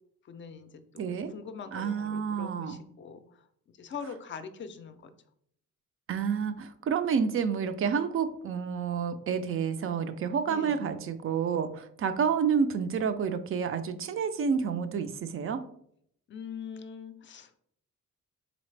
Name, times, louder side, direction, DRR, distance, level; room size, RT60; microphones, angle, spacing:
voice 1, 0.2-3.2 3.8-5.1 10.4-10.9 16.3-17.6, left 6 dB, 40° left, 10 dB, 0.4 m, -43 dB
voice 2, 1.0-1.3 1.7-2.8 6.1-15.6, right 6 dB, 45° right, 10 dB, 0.4 m, -29 dB
4.0 x 3.9 x 3.2 m, 0.69 s
cardioid pair, 150°, 31 cm